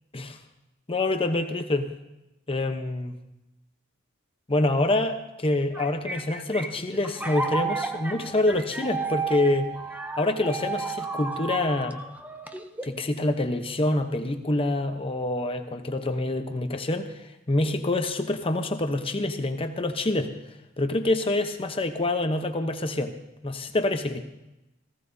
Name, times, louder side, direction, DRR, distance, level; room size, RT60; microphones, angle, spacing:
voice 1, 0.9-1.9 2.5-3.1 4.5-9.7 10.2-12.0 12.8-20.3 20.8-23.2 23.4-24.2, left 2 dB, 30° left, 6 dB, 0.8 m, -26 dB
sound 1, 5.5-13.0, right 4 dB, 10° right, 0.6 m, -33 dB
18.5 x 15.5 x 2.7 m, 0.94 s
head